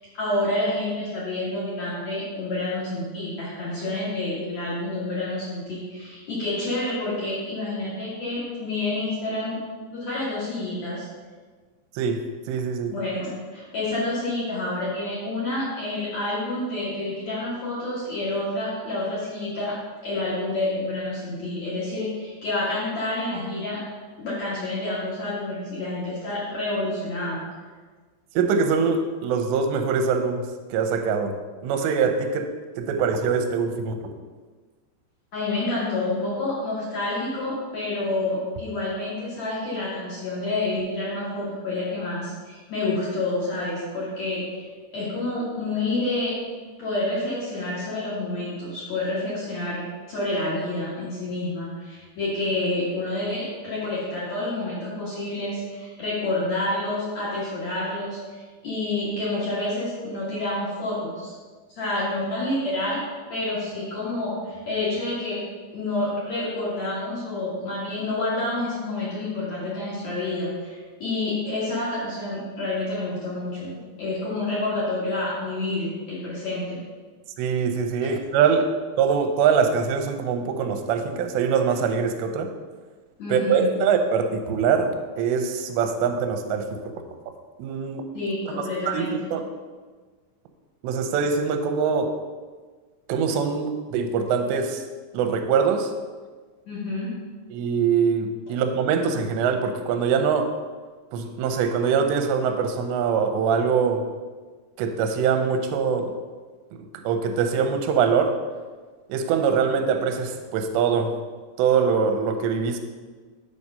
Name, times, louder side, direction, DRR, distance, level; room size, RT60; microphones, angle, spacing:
voice 1, 0.2-9.6 9.9-11.1 12.9-19.8 20.0-23.8 24.2-27.4 35.3-44.4 44.9-46.3 46.8-49.8 50.1-61.3 61.7-63.0 63.3-65.4 65.7-76.7 83.2-83.7 88.1-89.1 96.7-97.1, left 2 dB, 55° left, -8 dB, 2.2 m, -28 dB
voice 2, 12.0-12.9 28.4-31.4 31.6-32.5 32.8-34.0 77.4-78.7 79.0-82.5 83.3-86.8 87.6-88.0 88.9-89.4 90.8-92.1 93.1-94.8 95.1-95.9 97.5-100.5 101.1-104.1 104.8-106.1 107.0-108.4 109.1-111.1 111.6-112.8, right 6 dB, 80° right, 6 dB, 2.8 m, -23 dB
7.5 x 4.9 x 5.4 m, 1.4 s
omnidirectional pair, 5.1 m